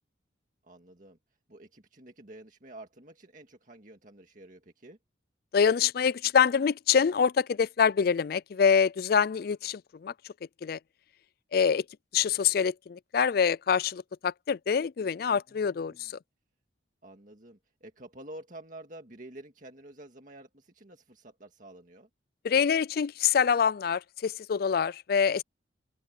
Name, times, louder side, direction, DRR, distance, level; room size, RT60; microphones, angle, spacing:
voice 1, 0.6-1.2 1.5-5.0 15.5-16.1 17.0-22.1, right 1 dB, 40° right, 2.0 m, -49 dB
voice 2, 5.5-10.1 10.6-10.8 11.5-11.8 12.1-16.2 22.4-25.4, left 6 dB, 50° left, 0.3 m, -25 dB
open air
head